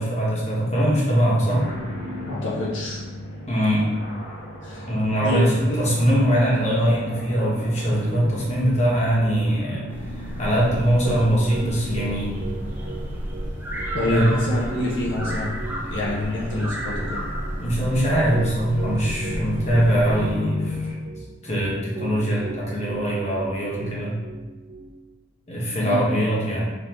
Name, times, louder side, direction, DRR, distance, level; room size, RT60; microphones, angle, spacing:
voice 1, 0.0-1.6 3.5-3.9 4.9-9.9 10.1-12.3 14.1-14.3 17.6-20.9 21.4-24.1 25.5-26.6, equal, 35° left, -6 dB, 1.1 m, -22 dB
sound 1, 1.4-20.9, left 2 dB, 85° left, 1.5 m, -37 dB
voice 2, 2.2-3.0 4.6-4.9 5.2-5.8 13.9-15.6 15.9-17.2 25.8-26.2, left 1 dB, 70° left, -5 dB, 0.6 m, -27 dB
sound 2, 9.9-20.4, equal, 10° right, 0.5 m, -33 dB
Piano, 10.7-24.9, right 4 dB, 85° right, 0.7 m, -36 dB
5.2 x 2.7 x 2.9 m, 1.2 s
head